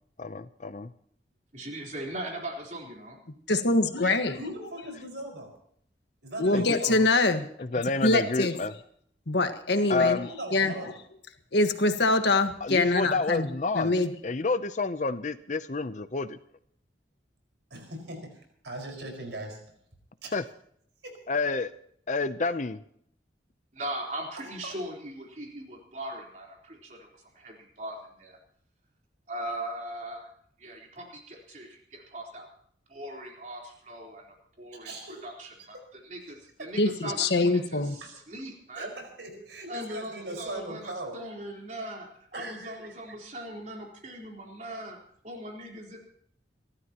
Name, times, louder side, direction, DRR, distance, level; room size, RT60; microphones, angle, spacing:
voice 1, 0.2-0.9 4.0-4.1 6.5-6.8 7.6-8.7 9.9-10.3 12.6-13.9 14.2-16.4 20.3-20.4 21.3-21.7 22.1-22.8, left 3 dB, 45° left, 12 dB, 0.6 m, -29 dB
voice 2, 1.5-3.2 23.7-28.4 29.3-30.3 30.6-32.5 32.9-34.3 34.6-34.9 35.2-35.8 36.0-38.9 39.7-45.0 45.2-46.1, right 1 dB, 45° right, 0 dB, 3.8 m, -39 dB
voice 3, 3.5-4.4 6.4-7.5 8.0-8.5 9.3-10.2 10.5-10.7 11.5-13.4 13.7-14.1 36.8-38.0, left 2 dB, 80° left, 7 dB, 1.5 m, -24 dB
voice 4, 4.3-5.5 6.2-7.0 9.8-11.0 17.7-19.6 20.2-20.3 21.0-21.2 24.4-24.7 34.8-35.3 35.7-35.8 38.0-38.1 38.7-41.2 42.3-42.9, right 1 dB, 90° right, 2 dB, 5.1 m, -40 dB
28.0 x 13.0 x 3.0 m, 0.65 s
head